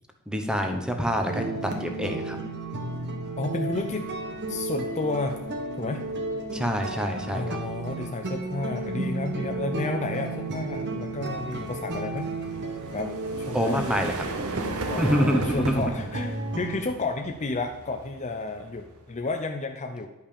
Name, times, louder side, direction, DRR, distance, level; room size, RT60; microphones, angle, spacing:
voice 1, 0.3-2.4 6.5-7.6 13.5-14.1 15.0-15.7, equal, 5° right, 4 dB, 1.1 m, -26 dB
sound 1, 1.2-16.8, right 2 dB, 55° right, 1.4 m, -33 dB
sound 2, 1.9-2.2 2.6-19.4, right 2 dB, 85° right, 1.1 m, -39 dB
voice 2, 3.4-4.0 4.5-5.4 5.8-6.0 7.3-12.3 12.9-13.1 13.5-13.8 14.9-20.1, left 3 dB, 35° left, 4 dB, 0.6 m, -31 dB
11.0 x 5.6 x 6.8 m, 1.1 s
head